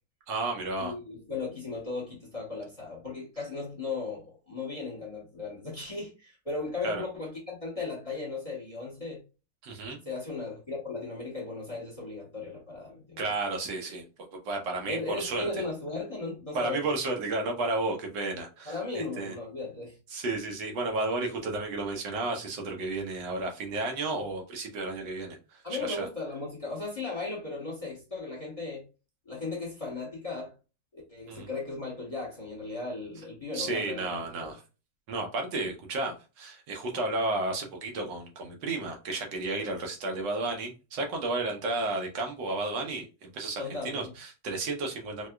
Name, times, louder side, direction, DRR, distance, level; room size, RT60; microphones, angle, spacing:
voice 1, 0.3-0.9 6.8-7.0 9.6-10.0 13.2-14.0 14.3-15.6 16.5-19.4 20.1-26.1 31.3-31.5 33.5-34.6 35.1-45.3, right 2 dB, 90° right, 1.6 m, -32 dB
voice 2, 0.8-9.2 10.0-13.3 14.9-16.9 18.6-20.0 25.6-28.8 29.2-30.5 30.9-34.5 43.6-44.1, left 3 dB, 25° left, 1.0 m, -36 dB
4.6 x 2.3 x 2.2 m
omnidirectional pair, 1.9 m